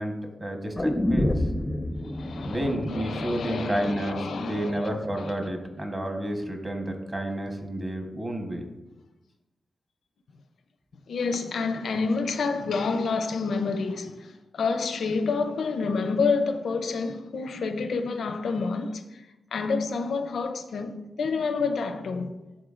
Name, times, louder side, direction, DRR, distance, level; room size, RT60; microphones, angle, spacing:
voice 1, 0.0-1.5 2.4-8.7, right 1 dB, 25° right, 1.0 m, -30 dB
sound 1, 0.8-4.8 5.1-5.2, left 1 dB, 15° left, 0.5 m, -29 dB
voice 2, 2.0-5.3 11.1-19.2 19.5-22.3, left 4 dB, 80° left, 0.5 m, -29 dB
11.0 x 3.7 x 2.5 m
cardioid pair, 90°, 0 cm